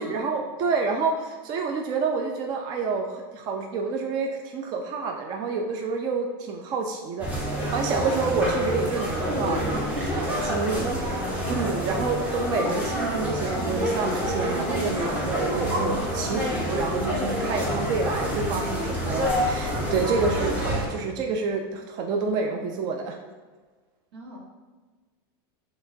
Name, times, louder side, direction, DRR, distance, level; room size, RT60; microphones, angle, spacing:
voice 1, 0.0-9.7 10.1-10.9 11.5-23.2, right 4 dB, 35° right, 2 dB, 0.4 m, -28 dB
sound 1, 7.2-20.9, equal, 10° right, 0.8 m, -27 dB
voice 2, 10.7-11.1 24.1-24.4, right 1 dB, 90° right, -3 dB, 1.3 m, -40 dB
6.3 x 3.0 x 2.6 m, 1.4 s
supercardioid pair, 155°, 12 cm